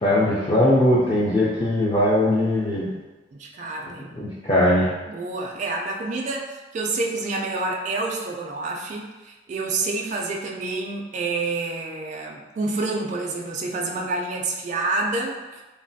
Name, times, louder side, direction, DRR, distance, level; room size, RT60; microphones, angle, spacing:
voice 1, 0.0-2.9 4.1-4.9, left 1 dB, 25° left, -8 dB, 0.4 m, -20 dB
voice 2, 3.4-4.1 5.1-15.3, right 3 dB, 40° right, -1 dB, 0.3 m, -28 dB
3.2 x 2.2 x 2.6 m, 1.2 s
head